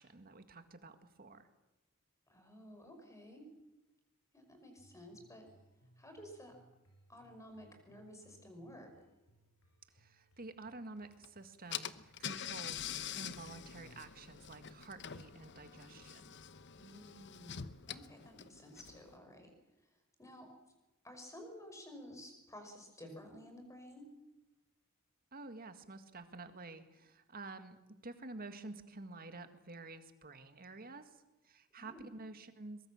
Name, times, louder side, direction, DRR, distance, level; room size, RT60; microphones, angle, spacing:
voice 1, 0.0-1.5 9.9-16.2 25.3-31.1 31.4-32.8, right 3 dB, 45° right, 9 dB, 1.9 m, -50 dB
voice 2, 2.3-3.5 4.3-5.5 6.0-6.6 7.1-8.9 16.8-19.5 20.2-20.5 21.0-24.1 31.8-32.2, equal, 15° left, 5 dB, 5.5 m, -53 dB
sound 1, 4.8-12.3, right 1 dB, 90° left, 7.3 m, -68 dB
Car / Engine, 11.2-11.3 11.7-19.1, left 9 dB, 55° left, 0.9 m, -45 dB
23.0 x 22.0 x 7.2 m, 1.0 s
head